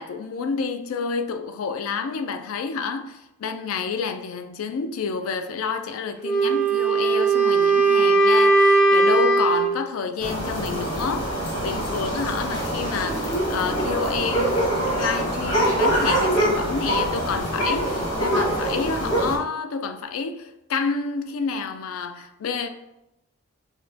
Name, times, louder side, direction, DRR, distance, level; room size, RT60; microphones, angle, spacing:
voice 1, 0.0-22.7, left 5 dB, 80° left, 0.4 m, -29 dB
Wind instrument woodwind instrument, 6.2-9.8, right 3 dB, 5° left, 0.5 m, -18 dB
sound 1, 10.2-19.4, right 1 dB, 55° left, 1.3 m, -24 dB
6.2 x 2.1 x 2.7 m
head